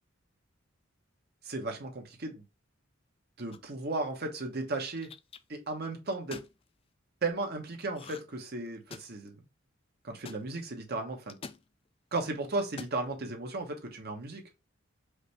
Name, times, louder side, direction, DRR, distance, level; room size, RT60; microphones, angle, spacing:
voice 1, 1.4-2.4 3.4-5.1 5.5-6.4 7.2-9.4 10.0-11.3 12.1-14.4, right 2 dB, 50° right, 1.1 m, -35 dB
sound 1, 3.5-3.9 4.7-5.4 6.1-6.5 7.9-8.4 8.7-9.3 10.2-10.4 11.3-11.6 12.6-13.0, left 5 dB, 30° left, 0.3 m, -46 dB
4.9 x 2.7 x 3.3 m
head